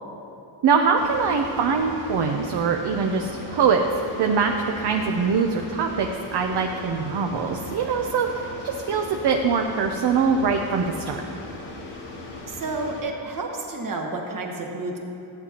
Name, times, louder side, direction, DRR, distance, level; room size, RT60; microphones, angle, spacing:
voice 1, 0.6-3.8 4.2-11.2, right 5 dB, 60° right, 3 dB, 0.6 m, -23 dB
sound 1, 1.0-13.0, left 2 dB, 60° left, 1.5 m, -38 dB
voice 2, 12.5-15.0, right 3 dB, 45° right, 1 dB, 1.2 m, -30 dB
14.0 x 8.6 x 2.9 m, 2.9 s
wide cardioid pair, 135°, 46 cm